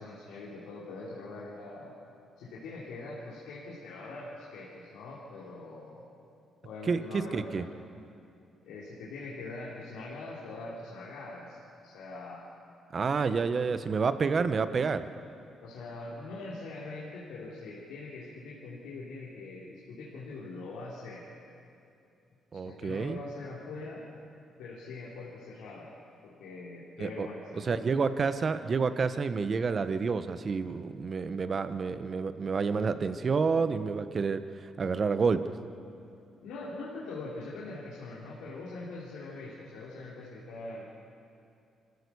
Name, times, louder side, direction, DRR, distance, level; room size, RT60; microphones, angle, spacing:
voice 1, 0.0-1.9 2.4-6.0 6.6-7.7 8.6-11.6 11.8-12.4 15.6-21.2 22.6-24.1 24.6-25.9 26.2-27.8 36.4-40.8, left 3 dB, 90° left, -7 dB, 3.1 m, -42 dB
voice 2, 6.9-7.6 12.9-15.0 22.5-23.2 27.0-27.3 27.7-35.5, right 5 dB, 40° right, 11 dB, 1.0 m, -29 dB
26.0 x 15.0 x 7.0 m, 2.6 s
cardioid pair, 90°, 0 cm